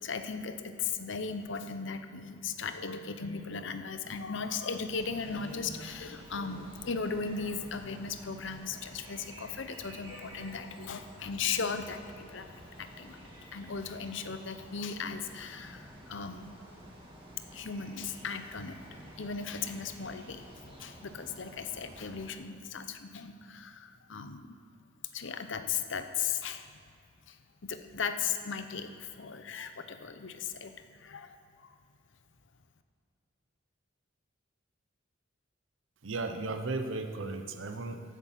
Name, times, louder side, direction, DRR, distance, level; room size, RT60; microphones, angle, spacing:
voice 1, 0.0-12.5 12.8-16.6 17.5-24.6 25.1-26.7 27.3-31.7, left 5 dB, 70° left, 9 dB, 0.8 m, -37 dB
sound 1, 4.8-22.3, equal, 30° right, 3.0 m, -50 dB
voice 2, 36.0-38.0, right 3 dB, 75° right, 7 dB, 0.8 m, -35 dB
14.5 x 8.4 x 5.9 m, 2.5 s
head